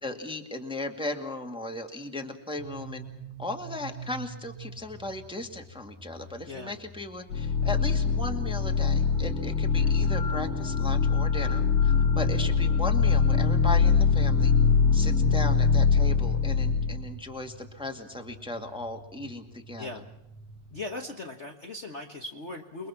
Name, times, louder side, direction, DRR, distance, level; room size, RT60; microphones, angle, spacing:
voice 1, 0.0-3.0 3.4-14.5 14.9-20.0, left 2 dB, ahead, 4 dB, 1.3 m, -37 dB
sound 1, 2.6-20.8, right 4 dB, 60° right, 2.6 m, -44 dB
voice 2, 6.5-6.8 9.7-10.0 19.8-20.1 20.7-22.9, left 2 dB, 55° left, 2 dB, 0.7 m, -39 dB
sound 2, 7.3-17.1, left 5 dB, 85° left, 3.5 m, -23 dB
29.5 x 22.0 x 5.9 m, 0.85 s
omnidirectional pair, 3.6 m